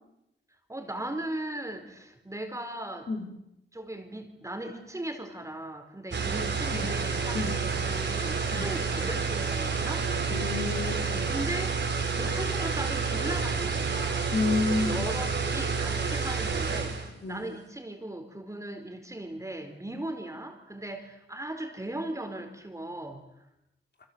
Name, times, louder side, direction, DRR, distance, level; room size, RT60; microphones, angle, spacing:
voice 1, 0.7-3.1 3.7-10.1 11.3-11.8 12.2-14.3 14.6-17.0 17.3-23.2, right 1 dB, 15° right, 5 dB, 4.3 m, -38 dB
sound 1, 6.1-17.1, right 5 dB, 65° right, 5.0 m, -29 dB
voice 2, 10.3-11.2 14.3-15.0 17.2-17.4 19.9-20.0, left 3 dB, 55° left, 3 dB, 4.4 m, -30 dB
27.5 x 27.0 x 8.0 m, 0.87 s
wide cardioid pair, 120°, 20 cm